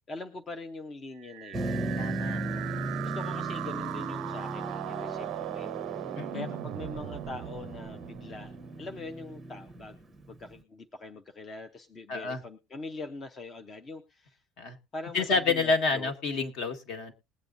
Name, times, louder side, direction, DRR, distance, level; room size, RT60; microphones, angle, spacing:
voice 1, 0.1-1.9 2.3-10.0 10.3-14.4 14.9-16.1, left 3 dB, 20° left, 7 dB, 0.6 m, -43 dB
sound 1, 1.2-9.1, right 17 dB, 50° right, 0.5 m, -39 dB
Motor vehicle (road), 1.5-10.5, right 2 dB, 5° right, 0.9 m, -37 dB
voice 2, 2.0-2.8 6.2-6.5 12.1-12.4 14.6-14.8 15.1-17.1, left 4 dB, 45° left, 7 dB, 1.5 m, -29 dB
20.5 x 8.5 x 2.5 m, 0.26 s
cardioid pair, 175°, 0 cm